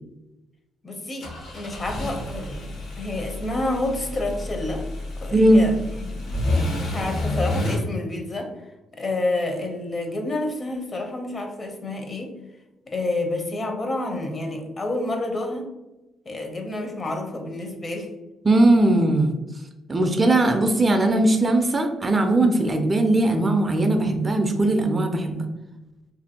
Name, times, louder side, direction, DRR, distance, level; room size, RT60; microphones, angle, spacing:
voice 1, 0.8-1.3 1.5-4.8 5.2-6.3 6.8-8.5 8.9-12.3 12.9-15.7 16.2-18.1, left 2 dB, 35° left, 3 dB, 0.6 m, -29 dB
sound 1, 1.2-7.8, left 1 dB, 75° left, 1.0 m, -29 dB
voice 2, 5.3-5.6 18.4-19.4 19.9-25.5, right 1 dB, 25° right, 5 dB, 0.3 m, -19 dB
2.7 x 2.5 x 2.7 m, 1.0 s
cardioid pair, 90°, 0 cm